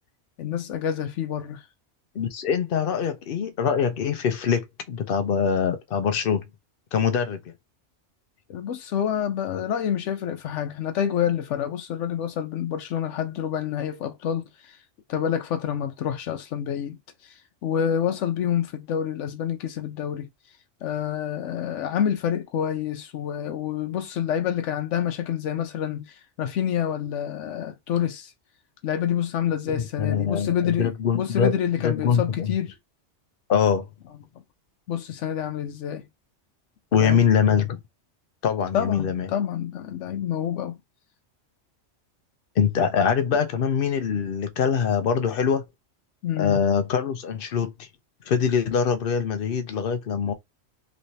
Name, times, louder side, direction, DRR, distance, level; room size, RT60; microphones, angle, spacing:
voice 1, 0.4-1.6 8.5-14.8 15.1-20.3 20.8-28.3 28.8-32.8 34.9-36.0 37.0-37.2 38.7-40.8 46.2-46.6, left 9 dB, 90° left, 1.0 m, -28 dB
voice 2, 2.2-6.4 6.9-7.4 29.7-31.5 31.8-32.5 33.5-33.9 36.9-37.8 38.4-39.3 42.6-45.6 46.4-47.9 48.3-50.3, left 7 dB, 60° left, 0.7 m, -23 dB
3.2 x 3.1 x 2.7 m
omnidirectional pair, 1.2 m